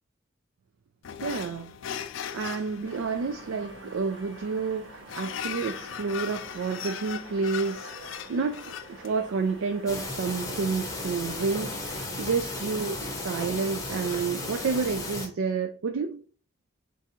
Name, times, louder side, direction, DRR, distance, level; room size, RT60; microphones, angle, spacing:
sound 1, 1.0-11.9, left 8 dB, 70° left, 0.4 m, -40 dB
voice 1, 1.2-1.7 2.3-7.9 8.3-11.8 12.2-16.2, right 4 dB, 80° right, 0.4 m, -30 dB
sound 2, 2.8-13.3, right 2 dB, 60° right, 0.8 m, -48 dB
sound 3, 9.9-15.3, left 2 dB, 15° left, 0.6 m, -35 dB
3.5 x 2.6 x 4.2 m
head